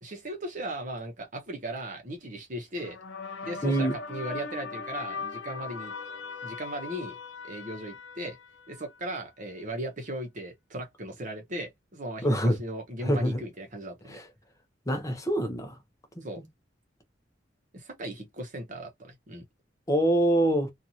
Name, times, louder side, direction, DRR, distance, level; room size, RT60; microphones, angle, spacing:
voice 1, 0.0-3.0 3.4-5.9 6.4-7.2 7.4-8.4 8.7-14.2 16.2-16.4 17.7-19.4, right 1 dB, 45° right, 0.8 m, -37 dB
sound 1, 2.8-9.1, left 4 dB, 80° left, 0.9 m, -39 dB
voice 2, 3.6-3.9 12.2-12.6 13.0-13.4 14.1-14.3 14.9-15.8 16.2-16.3 19.9-20.7, right 1 dB, 15° left, 0.6 m, -25 dB
2.8 x 2.4 x 2.7 m
head